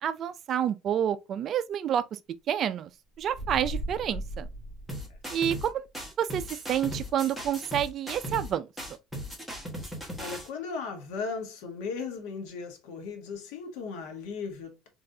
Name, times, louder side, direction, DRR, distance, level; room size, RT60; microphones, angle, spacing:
voice 1, 0.0-2.2 2.5-2.9 3.2-4.5 5.3-5.9 6.2-6.4 6.7-8.7, right 9 dB, 40° right, 0.4 m, -28 dB
sound 1, 3.2-5.6, equal, 55° left, 2.0 m, -37 dB
sound 2, 4.9-5.7 5.9-8.5 8.8-10.5, equal, 5° left, 1.5 m, -37 dB
voice 2, 10.2-14.9, left 5 dB, 80° left, 1.3 m, -37 dB
3.8 x 3.4 x 2.7 m
cardioid pair, 140°, 0 cm